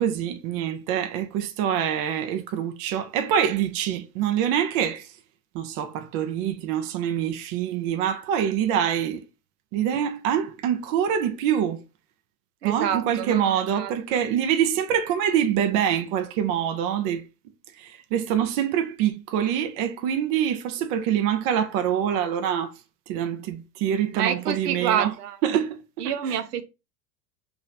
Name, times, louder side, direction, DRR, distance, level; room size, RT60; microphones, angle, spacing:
voice 1, 0.0-5.0 5.5-9.2 9.7-11.8 12.6-17.2 17.8-22.7 23.1-25.1 25.4-25.8 26.3-26.4, right 9 dB, 40° right, 0.6 m, -25 dB
voice 2, 12.6-14.2 24.1-25.4 26.0-26.6, right 9 dB, 70° right, 0.7 m, -28 dB
3.0 x 2.7 x 4.0 m
figure-of-eight pair, 85°, 49 cm